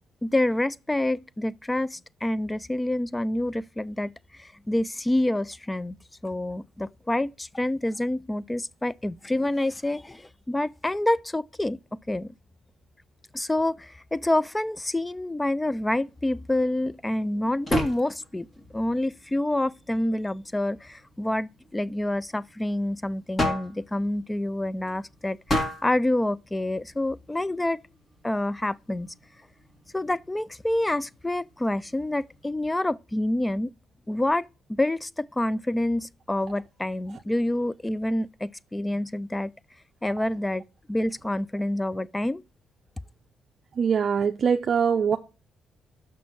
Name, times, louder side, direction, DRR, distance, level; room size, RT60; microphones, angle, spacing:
voice 1, 0.2-6.0 6.2-12.3 13.3-18.5 18.7-27.8 28.2-29.1 29.9-33.7 34.1-39.5 40.0-42.4, left 1 dB, 10° left, 0.4 m, -27 dB
sound 1, 15.6-32.5, left 1 dB, 30° left, 2.3 m, -37 dB
voice 2, 43.7-45.2, right 6 dB, 50° right, 0.5 m, -23 dB
6.1 x 6.1 x 5.8 m
cardioid pair, 90°, 0 cm